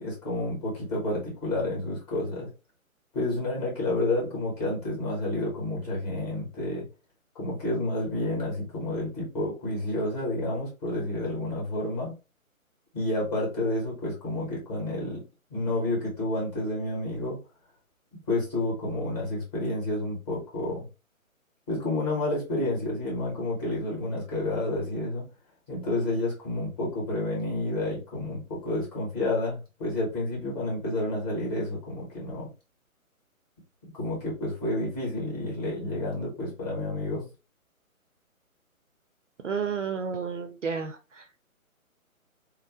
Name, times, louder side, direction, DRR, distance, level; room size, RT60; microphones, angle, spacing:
voice 1, 0.0-2.5 3.1-6.8 7.3-12.1 12.9-15.2 15.5-17.4 18.3-20.9 21.7-25.3 25.7-32.5 33.9-37.3, left 1 dB, 30° left, -4 dB, 1.6 m, -30 dB
voice 2, 39.4-41.2, right 6 dB, 60° right, 7 dB, 0.5 m, -31 dB
3.1 x 2.0 x 2.8 m, 0.29 s
figure-of-eight pair, 140°, 42 cm